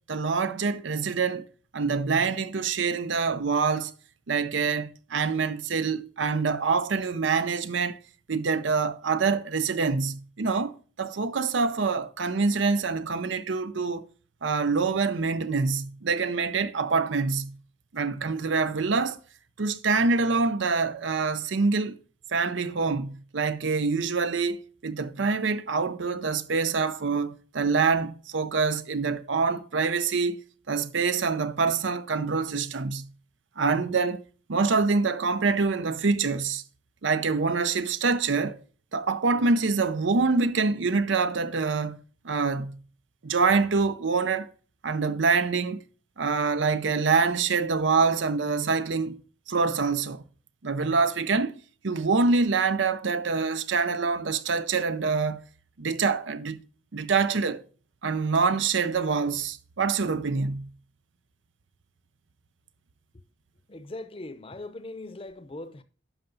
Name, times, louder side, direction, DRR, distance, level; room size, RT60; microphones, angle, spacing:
voice 1, 0.1-1.4 1.7-3.9 4.3-8.0 8.3-10.7 11.0-14.0 14.4-17.5 17.9-19.2 19.6-22.0 22.3-30.4 30.7-33.1 33.6-34.2 34.5-36.6 37.0-38.6 38.9-42.8 43.2-44.5 44.8-45.8 46.2-49.2 49.5-50.2 50.6-51.6 51.8-55.4 55.8-56.6 56.9-57.6 58.0-60.7, right 4 dB, 85° right, 0.7 m, -25 dB
voice 2, 63.7-65.8, left 2 dB, 30° left, 0.7 m, -40 dB
11.0 x 5.6 x 3.9 m
head